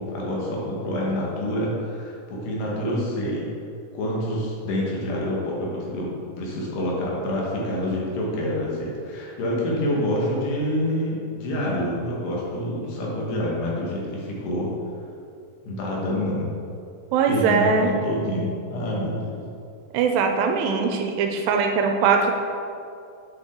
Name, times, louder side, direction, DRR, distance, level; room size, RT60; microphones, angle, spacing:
voice 1, 0.0-3.5 3.9-14.7 15.6-16.5 17.3-19.4, left 1 dB, 70° left, -4 dB, 3.3 m, -27 dB
voice 2, 17.1-17.9 19.9-22.3, right 5 dB, 85° right, 3 dB, 2.6 m, -21 dB
7.8 x 6.1 x 3.7 m, 2.5 s
omnidirectional pair, 5.1 m